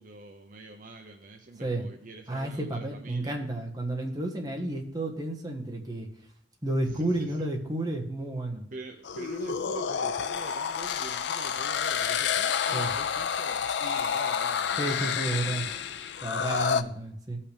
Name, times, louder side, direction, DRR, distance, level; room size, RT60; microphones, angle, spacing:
voice 1, 0.0-3.4 6.8-7.5 8.7-15.8 16.4-16.7, right 3 dB, 45° right, 4 dB, 0.7 m, -45 dB
voice 2, 2.3-6.1 6.6-8.6 12.7-12.9 14.8-15.7 16.2-17.4, right 1 dB, 20° right, 1 dB, 1.3 m, -31 dB
sound 1, 9.0-16.8, left 7 dB, 70° left, 0.4 m, -29 dB
16.5 x 5.7 x 3.4 m, 0.66 s
head